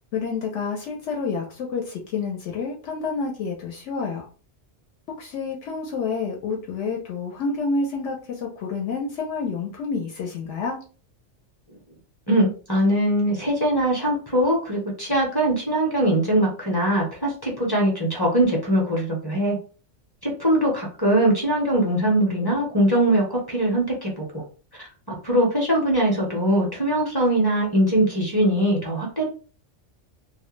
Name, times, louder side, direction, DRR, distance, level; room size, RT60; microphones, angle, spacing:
voice 1, 0.1-4.3 5.2-10.8, left 4 dB, 75° left, 0 dB, 0.9 m, -29 dB
voice 2, 12.3-19.6 20.2-24.4 24.8-29.2, right 1 dB, 25° left, -2 dB, 0.6 m, -22 dB
2.3 x 2.1 x 3.1 m, 0.37 s
omnidirectional pair, 1.3 m